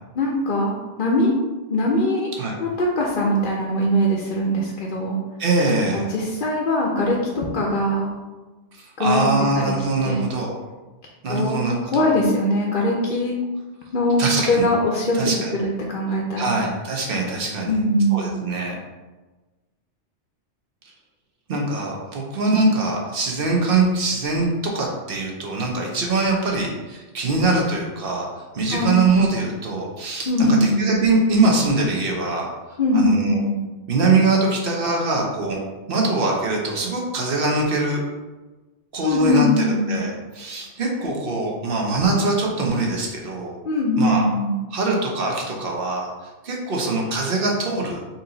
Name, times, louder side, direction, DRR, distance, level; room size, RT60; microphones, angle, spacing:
voice 1, 0.2-0.7 1.0-1.3 1.7-2.3 2.6-5.2 5.9-8.1 9.0-9.7 10.0-10.3 11.3-11.6 11.9-13.3 13.9-14.2 14.5-15.2 15.5-16.6 17.7-18.3 28.7-29.0 30.3-31.0 32.8-33.6 39.0-40.0 43.7-44.6, left 1 dB, 55° left, -2 dB, 0.7 m, -21 dB
voice 2, 5.4-6.1 8.7-10.6 11.2-12.1 14.2-14.7 15.1-15.5 16.4-17.8 18.1-18.8 21.5-28.3 28.5-32.5 32.9-33.4 33.9-35.6 35.9-38.0 38.9-43.5 44.0-44.2 44.7-46.1 46.4-48.0, right 3 dB, 55° right, -1 dB, 0.9 m, -22 dB
4.2 x 2.7 x 3.8 m, 1.2 s
omnidirectional pair, 1.2 m